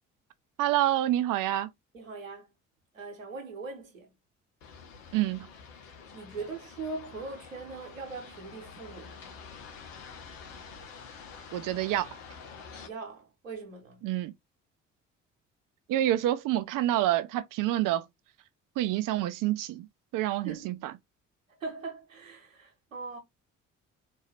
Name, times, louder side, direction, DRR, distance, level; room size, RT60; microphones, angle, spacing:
voice 1, 0.6-1.7 5.1-5.5 11.5-12.1 14.0-14.3 15.9-18.0 18.8-19.9 20.1-20.7, right 14 dB, 55° right, 0.7 m, -27 dB
voice 2, 1.9-2.5 2.9-4.1 6.1-9.3 12.8-14.1 20.4-20.7 21.6-23.2, right 4 dB, 90° right, 1.2 m, -41 dB
sound 1, 4.6-12.9, left 5 dB, 80° left, 1.0 m, -48 dB
4.2 x 2.7 x 3.2 m
figure-of-eight pair, 50°, 38 cm